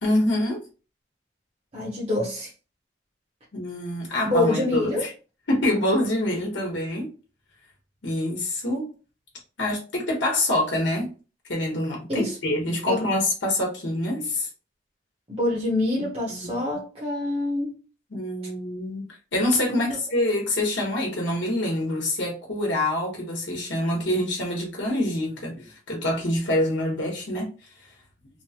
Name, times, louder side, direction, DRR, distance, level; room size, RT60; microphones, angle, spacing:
voice 1, 0.0-0.6 3.5-5.1 5.5-7.1 8.0-8.9 9.6-11.1 11.5-14.5 16.0-16.5 18.1-27.5, left 1 dB, 80° left, 1.0 m, -26 dB
voice 2, 1.7-2.5 4.3-5.0 12.1-12.4 12.9-13.1 15.3-17.8, left 2 dB, 35° right, 0.8 m, -26 dB
3.0 x 2.1 x 2.7 m
head